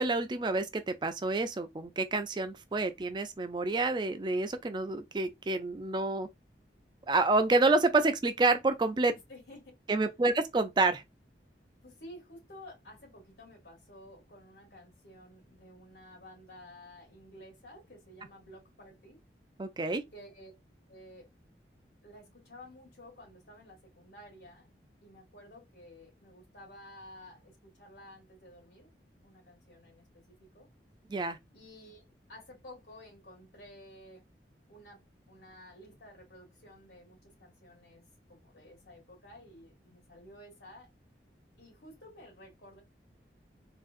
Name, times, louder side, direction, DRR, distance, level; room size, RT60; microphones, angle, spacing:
voice 1, 0.0-6.3 7.1-9.1 9.9-11.0 19.6-20.0 31.1-31.4, right 3 dB, 25° right, 0.4 m, -28 dB
voice 2, 9.1-9.7 11.8-19.2 20.1-20.5 20.9-21.3 22.0-24.7 25.0-28.9 29.2-30.2 30.5-30.7 31.5-32.0 32.3-34.3 34.7-38.0 38.3-40.9 41.6-42.8, left 1 dB, 70° left, 1.9 m, -53 dB
3.7 x 2.4 x 2.5 m
head